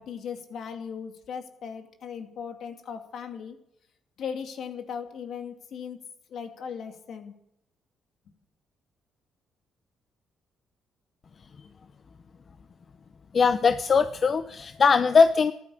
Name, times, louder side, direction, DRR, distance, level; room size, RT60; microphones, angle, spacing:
voice 1, 0.0-3.6 4.2-6.0 6.3-7.3, left 7 dB, 70° left, 5 dB, 2.4 m, -37 dB
voice 2, 13.3-15.5, left 5 dB, 45° left, 11 dB, 0.7 m, -20 dB
14.0 x 12.0 x 8.6 m, 0.77 s
cardioid pair, 90°, 0 cm